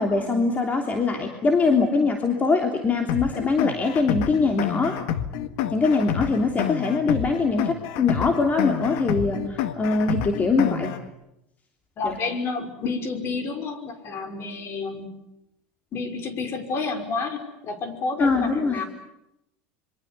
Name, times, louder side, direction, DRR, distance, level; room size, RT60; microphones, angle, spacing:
voice 1, 0.0-4.9 5.7-10.9 12.0-12.2 18.2-18.8, left 4 dB, 25° left, 4 dB, 3.1 m, -22 dB
sound 1, 3.1-11.1, left 10 dB, 70° left, 1.8 m, -29 dB
voice 2, 12.0-15.1 15.9-18.8, left 4 dB, 45° left, 7 dB, 5.7 m, -30 dB
26.5 x 24.0 x 8.4 m, 0.84 s
supercardioid pair, 100°, 6 cm